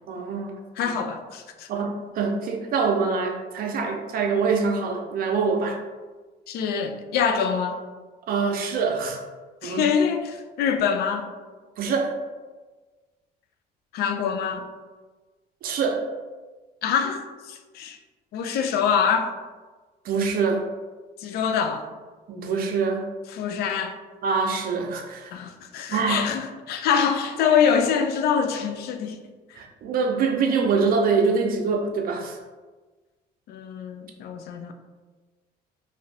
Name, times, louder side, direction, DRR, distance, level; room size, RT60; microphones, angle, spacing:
voice 1, 0.1-0.6 1.7-5.8 8.3-9.2 9.6-9.9 11.8-12.1 15.6-16.1 20.0-20.6 22.3-23.1 24.2-25.3 25.9-26.3 29.5-32.4, right 5 dB, 60° right, 2 dB, 0.6 m, -24 dB
voice 2, 0.8-1.7 6.5-7.8 9.6-11.3 13.9-14.7 16.8-18.0 18.3-19.3 21.2-21.8 23.3-23.9 25.3-29.2 33.5-34.7, left 7 dB, 70° left, 7 dB, 0.4 m, -25 dB
2.6 x 2.5 x 3.2 m, 1.3 s
cardioid pair, 110°, 17 cm